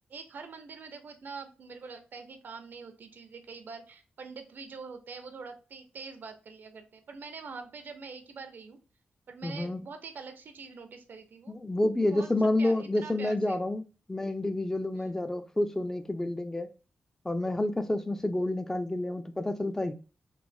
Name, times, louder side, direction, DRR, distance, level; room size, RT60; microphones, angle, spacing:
voice 1, 0.1-8.8 9.3-11.5 12.1-12.3 12.6-13.6 14.9-15.2, right 4 dB, 65° right, 0.5 m, -44 dB
voice 2, 9.4-9.8 11.5-13.8 14.1-16.7 17.2-19.9, left 1 dB, 15° left, 0.3 m, -29 dB
3.1 x 2.1 x 2.5 m
wide cardioid pair, 105°, 4 cm